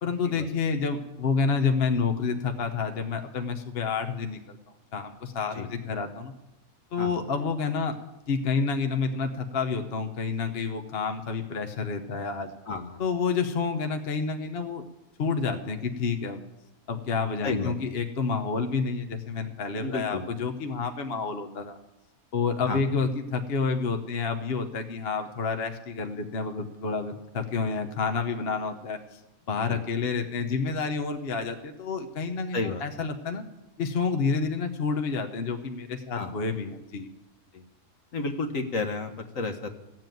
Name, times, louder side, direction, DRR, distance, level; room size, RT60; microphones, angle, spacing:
voice 1, 0.0-4.6 4.9-6.3 6.9-8.0 8.3-12.5 13.0-14.8 15.2-16.4 16.9-21.8 22.3-29.2 29.5-33.4 33.8-37.1, left 5 dB, 45° left, 6 dB, 1.1 m, -29 dB
voice 2, 12.7-13.0 17.4-17.7 19.8-20.2 22.7-22.8 28.1-28.2 29.6-29.8 32.5-32.8 36.1-36.4 37.5-37.6 38.1-39.7, left 3 dB, 65° left, 6 dB, 1.6 m, -32 dB
15.5 x 7.6 x 9.1 m, 0.95 s
omnidirectional pair, 1.5 m